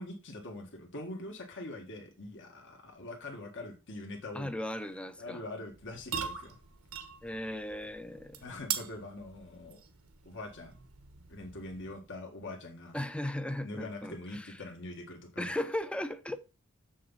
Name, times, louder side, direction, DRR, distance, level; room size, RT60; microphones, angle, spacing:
voice 1, 0.0-4.5 5.2-6.6 8.4-9.8 10.3-10.7 11.3-13.0 13.6-15.5, left 2 dB, 60° left, 1.7 m, -43 dB
voice 2, 4.3-5.4 7.2-8.5 12.9-14.6 15.4-16.4, left 1 dB, 5° left, 0.6 m, -37 dB
sound 1, 5.7-12.1, right 8 dB, 85° right, 1.2 m, -42 dB
7.2 x 6.2 x 4.0 m
head